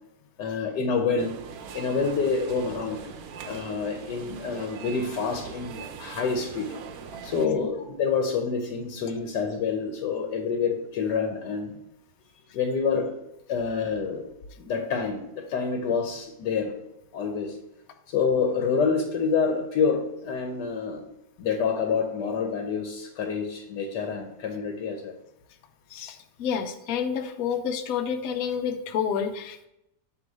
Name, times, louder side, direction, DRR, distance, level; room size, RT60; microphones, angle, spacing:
voice 1, 0.4-1.3 1.7-3.0 3.5-6.7 7.2-11.7 12.5-13.1 13.5-14.3 14.6-16.8 17.1-17.6 18.1-21.1 21.4-25.1, left 5 dB, 85° left, 3 dB, 1.4 m, -27 dB
sound 1, 1.2-7.5, right 7 dB, 70° right, 1.0 m, -41 dB
voice 2, 25.9-29.7, left 7 dB, 65° left, 7 dB, 1.0 m, -29 dB
7.9 x 3.0 x 5.3 m, 0.85 s
omnidirectional pair, 1.8 m